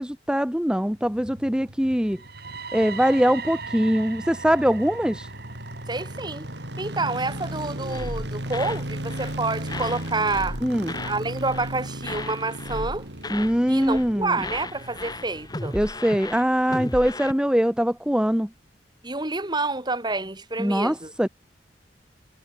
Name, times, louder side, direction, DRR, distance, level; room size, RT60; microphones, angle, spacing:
voice 1, 0.0-2.2 2.7-5.3 10.6-10.9 13.3-14.4 15.7-18.5 20.6-21.3, equal, 5° right, 1.0 m, -22 dB
sound 1, 0.9-16.2 16.4-16.5, right 1 dB, 80° right, 7.9 m, -36 dB
sound 2, 2.0-9.9, right 5 dB, 60° right, 2.6 m, -41 dB
voice 2, 5.9-6.5 6.8-10.6 11.0-13.1 13.7-15.8 19.0-21.1, right 3 dB, 25° right, 3.6 m, -28 dB
sound 3, 7.9-8.8 9.1-9.4 9.7-11.2 11.4-11.7 12.0-13.6 13.8-14.1 14.4-17.3, left 2 dB, 25° left, 4.8 m, -35 dB
head